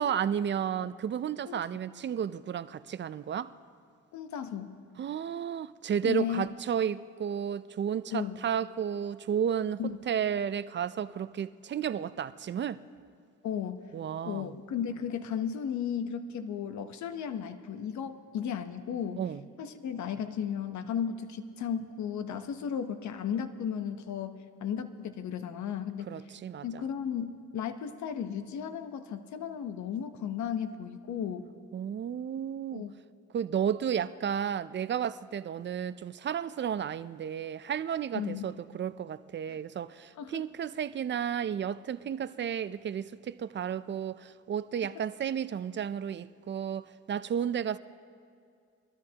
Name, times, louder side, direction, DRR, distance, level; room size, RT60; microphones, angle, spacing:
voice 1, 0.0-3.5 5.0-9.8 10.1-12.8 13.9-14.5 19.2-19.4 26.1-26.8 31.7-32.9 33.3-47.8, right 8 dB, 40° right, 0.4 m, -32 dB
voice 2, 4.1-4.8 6.0-6.5 8.1-8.4 9.8-10.0 13.4-13.9 14.2-19.3 19.6-26.1 26.6-31.5 32.7-32.9 38.1-38.5 39.5-39.6 40.2-40.5, left 8 dB, 70° left, 0.9 m, -35 dB
23.0 x 13.0 x 2.9 m
cardioid pair, 90°, 30 cm